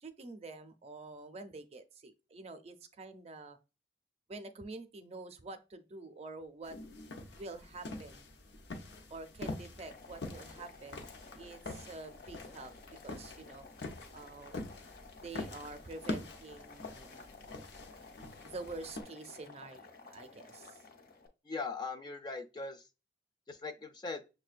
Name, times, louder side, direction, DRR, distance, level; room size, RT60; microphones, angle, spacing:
voice 1, 0.0-3.6 4.3-6.8 7.3-8.3 9.1-11.1 11.4-12.7 13.0-13.6 14.1-14.6 15.2-17.3 18.4-20.8, right 3 dB, 35° right, 0.5 m, -47 dB
sound 1, 6.6-19.0, left 2 dB, 85° left, 0.7 m, -45 dB
Boiling, 9.7-21.3, left 4 dB, 55° left, 0.7 m, -55 dB
voice 2, 21.5-22.8 23.5-24.2, left 4 dB, 25° left, 0.3 m, -40 dB
6.5 x 2.2 x 2.4 m
head